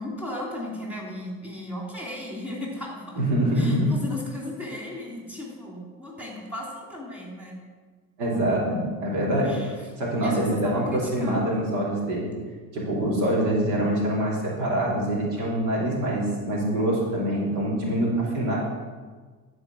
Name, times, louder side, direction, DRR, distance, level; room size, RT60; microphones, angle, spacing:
voice 1, 0.0-3.2 3.5-7.5 9.4-9.9 10.2-11.7, left 1 dB, 5° right, -3 dB, 3.0 m, -36 dB
voice 2, 3.2-4.0 8.2-9.6 10.0-12.3 12.7-18.6, right 1 dB, 85° right, -3 dB, 3.0 m, -25 dB
11.5 x 4.8 x 6.3 m, 1.5 s
supercardioid pair, 100°, 33 cm